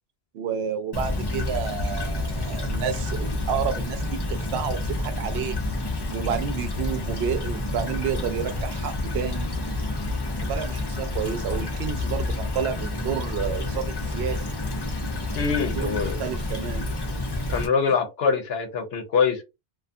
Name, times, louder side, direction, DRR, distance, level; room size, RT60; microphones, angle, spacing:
voice 1, 0.3-5.6 6.1-9.5 10.5-14.4 15.7-16.9, right 8 dB, 75° right, 0.8 m, -30 dB
Stream / Trickle dribble, 0.9-17.7, left 2 dB, 35° left, 0.4 m, -29 dB
voice 2, 15.3-16.2 17.5-19.4, left 5 dB, 75° left, 0.9 m, -24 dB
2.4 x 2.3 x 2.5 m
omnidirectional pair, 1.1 m